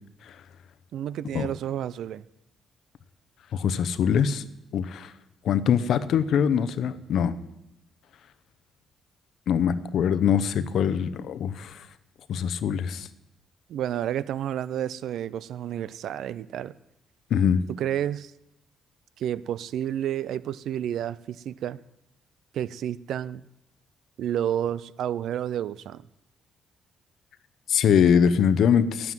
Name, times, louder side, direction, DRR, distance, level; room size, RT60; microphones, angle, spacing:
voice 1, 0.9-2.2 13.7-16.7 17.8-18.3 19.2-21.8 22.5-23.4 24.2-26.0, right 10 dB, 75° right, 19 dB, 0.5 m, -30 dB
voice 2, 3.5-4.4 4.7-5.1 5.4-7.4 9.5-11.8 12.3-13.1 17.3-17.6 27.7-29.1, left 8 dB, 70° left, 14 dB, 0.8 m, -23 dB
9.6 x 9.2 x 9.2 m, 0.86 s
cardioid pair, 90°, 0 cm